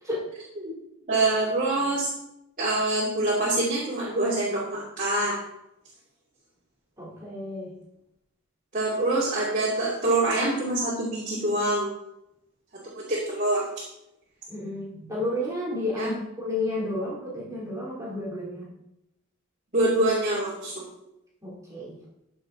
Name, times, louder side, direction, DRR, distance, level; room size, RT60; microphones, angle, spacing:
voice 1, 1.1-2.1 2.6-5.4 8.7-11.9 12.8-13.8 16.0-16.1 19.7-20.9, right 2 dB, 35° right, -7 dB, 2.8 m, -25 dB
voice 2, 7.0-7.7 14.5-18.7 21.4-22.0, left 1 dB, 15° right, -6 dB, 3.3 m, -31 dB
14.0 x 6.9 x 4.0 m, 0.85 s
head